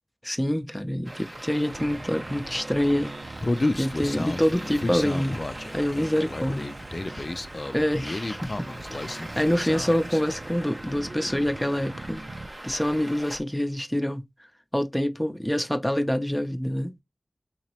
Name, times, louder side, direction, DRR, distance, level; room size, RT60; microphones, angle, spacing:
voice 1, 0.2-3.1 3.7-5.4 5.7-6.8 7.1-7.3 7.7-8.5 8.9-12.2 12.6-14.2 14.7-16.9, equal, 10° left, 0.6 m, -26 dB
Traffic noise roadway noise, 1.0-13.4, right 1 dB, 40° right, 0.7 m, -42 dB
sound 1, 1.7-12.5, right 2 dB, 65° right, 0.4 m, -42 dB
Human voice, 3.4-10.2, left 2 dB, 50° left, 0.3 m, -31 dB
3.9 x 2.9 x 2.9 m
wide cardioid pair, 45°, 0 cm